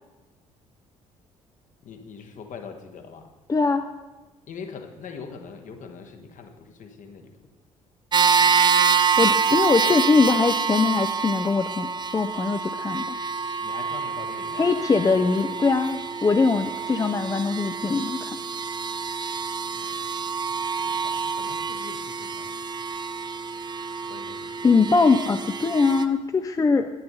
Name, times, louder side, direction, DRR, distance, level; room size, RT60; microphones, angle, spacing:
voice 1, 1.8-3.2 4.5-7.3 8.3-8.5 13.6-14.9 19.7-20.3 20.8-22.5 24.1-24.7, left 5 dB, 50° left, 5 dB, 1.1 m, -42 dB
voice 2, 3.5-3.9 9.2-13.0 14.6-18.4 24.6-26.9, left 4 dB, 20° left, 8 dB, 0.4 m, -22 dB
sound 1, 8.1-26.0, right 6 dB, 25° right, 0.6 m, -26 dB
9.0 x 6.9 x 5.4 m, 1.2 s
figure-of-eight pair, 50°, 17 cm